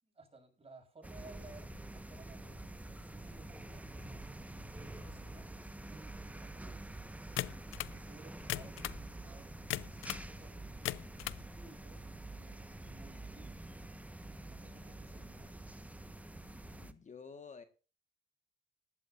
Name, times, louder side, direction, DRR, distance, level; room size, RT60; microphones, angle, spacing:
voice 1, 0.0-6.9 7.8-11.2 11.5-13.7 14.4-15.6, right 3 dB, 30° right, 3 dB, 6.9 m, -59 dB
sound 1, 1.0-16.9, right 1 dB, 5° right, 1.2 m, -47 dB
sound 2, 7.4-8.0 8.4-9.0 9.7-10.3 10.7-11.4, left 15 dB, 85° left, 0.6 m, -38 dB
voice 2, 16.7-17.6, left 5 dB, 40° left, 8 dB, 1.6 m, -50 dB
19.5 x 12.5 x 2.6 m, 0.36 s
cardioid pair, 90°, 20 cm